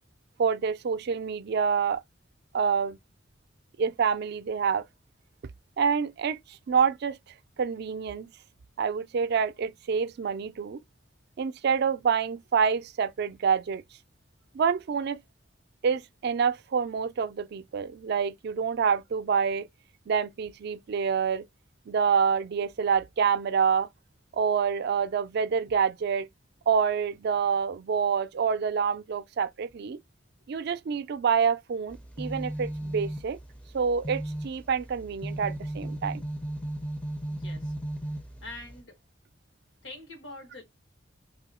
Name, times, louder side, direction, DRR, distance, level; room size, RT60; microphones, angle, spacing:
voice 1, 0.4-2.0 2.5-3.0 3.8-4.8 5.8-6.4 6.7-7.2 7.6-8.3 8.8-10.8 11.4-13.8 14.5-15.2 15.8-19.7 20.1-21.5 21.9-23.9 24.3-26.3 26.7-30.0 30.5-33.4 33.7-36.2, right 6 dB, 60° right, 0.4 m, -27 dB
sound 1, 31.9-38.8, right 1 dB, 5° left, 0.4 m, -36 dB
voice 2, 37.3-37.7 38.4-39.0 39.8-40.6, left 2 dB, 75° left, 1.3 m, -44 dB
3.0 x 2.7 x 4.1 m
head